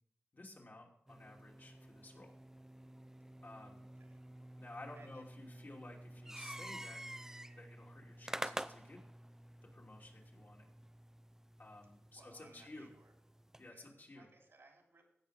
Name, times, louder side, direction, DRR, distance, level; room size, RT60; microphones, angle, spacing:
voice 1, 0.3-2.3 3.4-3.8 4.6-7.0 7.6-9.0 9.6-10.7 11.6-12.9 13.6-14.3, left 2 dB, 55° left, -1 dB, 2.8 m, -54 dB
sound 1, 1.1-13.7, right 1 dB, 10° right, 0.5 m, -50 dB
voice 2, 3.8-4.2 4.9-5.2 12.1-13.1 13.7-15.0, right 3 dB, 80° right, 1 dB, 3.1 m, -63 dB
16.0 x 5.6 x 5.0 m, 0.78 s
wide cardioid pair, 55°, 4 cm